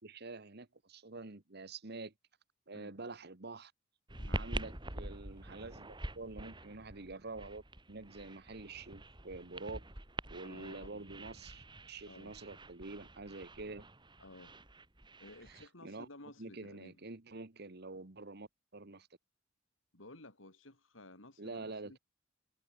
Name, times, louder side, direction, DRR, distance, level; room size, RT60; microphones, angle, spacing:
voice 1, 0.0-2.1 2.7-3.7 4.3-7.6 7.9-9.9 10.3-13.9 15.5-16.1 16.4-19.1 21.4-22.0, right 3 dB, 55° right, 1.5 m, -47 dB
sound 1, 4.1-15.6, right 1 dB, 25° right, 3.5 m, -46 dB
voice 2, 10.4-11.1 12.1-12.3 14.2-14.5 15.2-17.0 19.9-22.0, left 2 dB, 80° left, 4.0 m, -55 dB
head